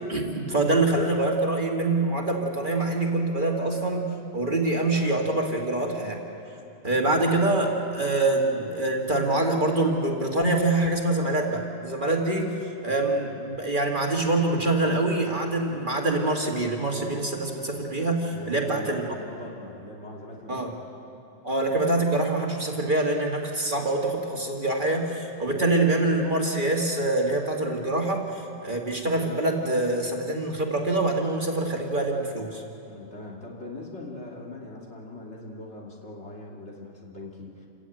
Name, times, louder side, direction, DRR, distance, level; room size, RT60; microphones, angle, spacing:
voice 1, 0.1-6.2 6.8-19.0 20.5-20.7 21.4-32.6, right 2 dB, 40° right, 0 dB, 2.2 m, -25 dB
voice 2, 18.3-20.8 32.8-37.7, left 1 dB, 60° left, -2 dB, 2.9 m, -40 dB
28.0 x 14.5 x 9.1 m, 3.0 s
omnidirectional pair, 1.3 m